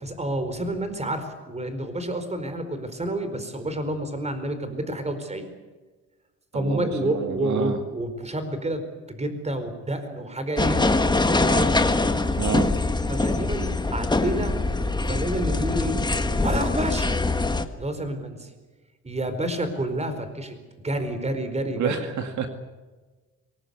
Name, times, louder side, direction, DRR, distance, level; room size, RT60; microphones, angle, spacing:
voice 1, 0.0-5.5 6.5-10.8 11.4-11.8 13.1-14.5 15.1-16.0 16.4-17.1 17.8-18.5 19.0-20.5 20.8-21.9, right 1 dB, 20° right, 9 dB, 4.6 m, -29 dB
voice 2, 6.5-7.8 12.4-12.7 21.8-22.5, right 7 dB, 70° right, 6 dB, 2.2 m, -28 dB
sound 1, 10.6-17.6, left 2 dB, 15° left, 1.6 m, -23 dB
23.5 x 19.0 x 8.2 m, 1.3 s
cardioid pair, 90°, 30 cm